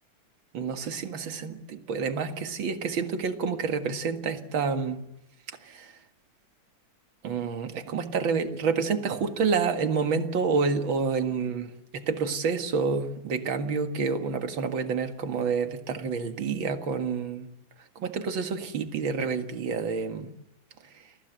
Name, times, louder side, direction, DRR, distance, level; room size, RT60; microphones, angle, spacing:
voice 1, 0.5-5.0 5.6-5.9 7.2-17.5 18.0-20.3, right 5 dB, 45° right, 7 dB, 2.0 m, -28 dB
29.5 x 22.5 x 8.2 m, 0.87 s
omnidirectional pair, 3.8 m